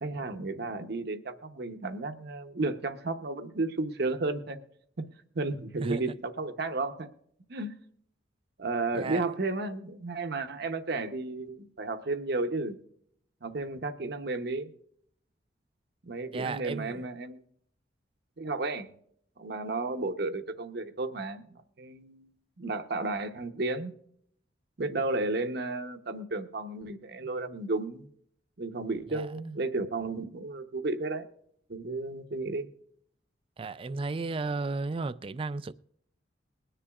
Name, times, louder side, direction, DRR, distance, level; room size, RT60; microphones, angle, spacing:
voice 1, 0.0-4.6 5.0-5.1 5.3-7.1 7.5-7.7 8.6-12.8 13.4-14.7 16.0-17.4 18.4-18.9 19.4-21.4 21.8-22.3 22.6-23.9 24.8-28.1 28.6-31.3 31.7-32.7, right 3 dB, 60° right, 0.8 m, -33 dB
voice 2, 16.3-17.0 29.1-29.3 33.6-35.7, right 3 dB, 30° right, 0.3 m, -34 dB
21.0 x 10.0 x 2.4 m
head